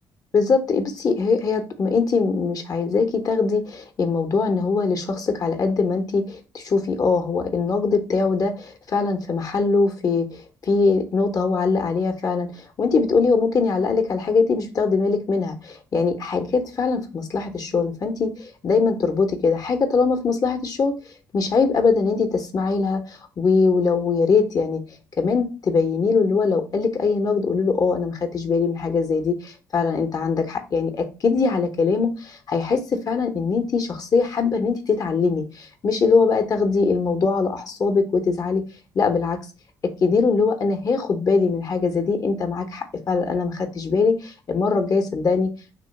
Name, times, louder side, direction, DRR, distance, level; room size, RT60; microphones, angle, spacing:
voice 1, 0.3-12.5 12.8-20.9 21.3-24.8 25.2-32.8 33.1-38.6 38.9-39.4 40.0-45.5, left 4 dB, 50° left, 6 dB, 0.8 m, -22 dB
3.0 x 2.9 x 4.0 m, 0.32 s
cardioid pair, 75°, 8 cm